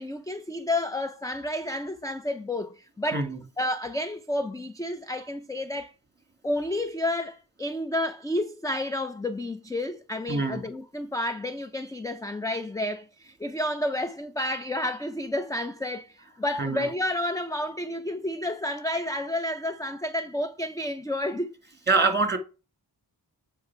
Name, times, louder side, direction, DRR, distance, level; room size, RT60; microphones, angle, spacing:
voice 1, 0.0-3.3 3.6-5.9 6.4-21.6, left 1 dB, 10° left, 0.5 m, -30 dB
voice 2, 10.3-10.7 16.6-16.9 21.9-22.4, right 3 dB, 25° right, 2.1 m, -24 dB
8.4 x 5.3 x 4.7 m
wide cardioid pair, 85°, 42 cm